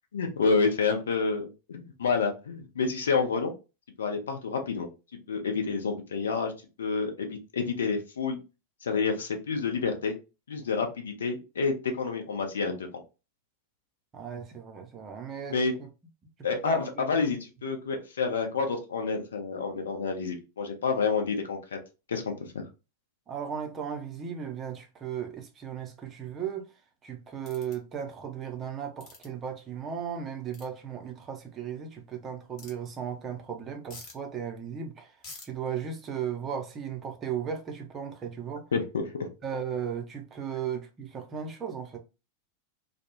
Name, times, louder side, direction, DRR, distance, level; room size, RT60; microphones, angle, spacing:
voice 1, 0.1-3.5 4.0-4.9 5.3-6.5 6.8-8.4 8.8-10.1 10.5-12.9 15.5-15.7 16.4-21.8 22.1-22.6 38.7-39.0, left 5 dB, 65° left, 0.6 m, -29 dB
voice 2, 14.1-15.9 16.6-17.0 23.3-26.7 27.0-35.1 35.4-38.7 39.4-42.0, right 7 dB, 25° right, 0.6 m, -36 dB
sound 1, 27.5-27.8 29.0-29.3 30.5-30.7 32.6-32.7 33.9-34.2 35.2-35.5, left 3 dB, 35° left, 1.0 m, -45 dB
2.2 x 2.0 x 2.9 m
figure-of-eight pair, 90°, 0 cm